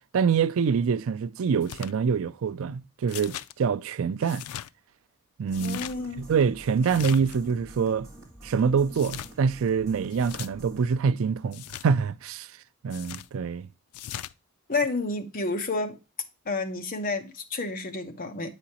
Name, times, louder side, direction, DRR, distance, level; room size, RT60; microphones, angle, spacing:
voice 1, 0.1-4.5 5.4-5.8 6.2-8.1 8.4-12.5 12.8-13.7, right 6 dB, 65° right, 0.4 m, -25 dB
sound 1, 1.6-1.9 3.1-3.5 4.2-4.7 5.5-5.9 6.8-7.4 8.9-9.3 10.1-10.5 11.5-11.9 12.9-13.3 13.9-14.3, left 11 dB, 90° left, 0.3 m, -39 dB
sound 2, 5.5-10.9, right 1 dB, 15° right, 1.9 m, -48 dB
voice 2, 5.6-6.3 14.7-16.0 16.4-18.5, left 3 dB, 40° left, 0.9 m, -30 dB
8.3 x 5.0 x 2.8 m
head